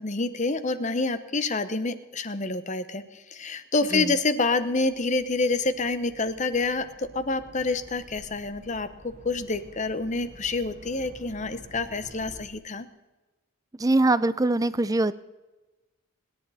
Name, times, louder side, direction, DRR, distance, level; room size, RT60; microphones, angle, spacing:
voice 1, 0.0-12.9, left 3 dB, 35° left, 12 dB, 0.9 m, -28 dB
sound 1, 4.4-12.4, right 1 dB, 35° right, 1.5 m, -50 dB
voice 2, 13.8-15.1, right 2 dB, 15° right, 16 dB, 0.5 m, -22 dB
26.0 x 10.5 x 4.2 m, 1.1 s
head